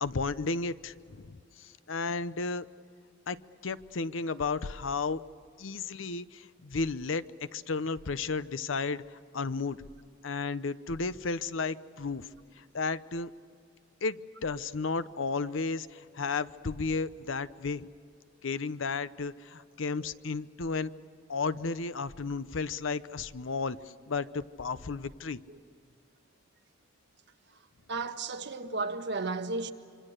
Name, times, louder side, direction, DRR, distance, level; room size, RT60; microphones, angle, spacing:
voice 1, 0.0-2.7 3.3-3.4 3.6-5.2 5.6-9.0 9.3-9.8 10.2-12.3 12.6-13.3 14.0-17.9 18.4-20.9 21.3-23.8 24.1-25.4, left 4 dB, 75° left, 0.7 m, -33 dB
voice 2, 27.9-29.7, right 3 dB, 60° right, 1.4 m, -33 dB
26.5 x 25.0 x 6.6 m
head